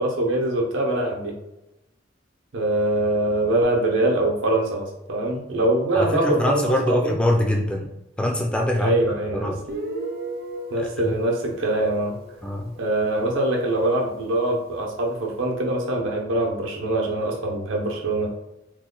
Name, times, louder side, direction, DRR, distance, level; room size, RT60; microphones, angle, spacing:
voice 1, 0.0-1.3 2.5-7.1 8.8-9.5 10.7-12.2 12.8-18.3, right 1 dB, 85° right, 1 dB, 0.7 m, -23 dB
voice 2, 5.9-7.9 8.2-8.9 9.3-9.6 10.8-11.1 12.4-12.7, left 1 dB, 5° left, 1 dB, 0.3 m, -23 dB
Guitar, 9.7-13.2, right 1 dB, 50° right, 0.6 m, -35 dB
3.0 x 2.2 x 3.7 m, 0.93 s
head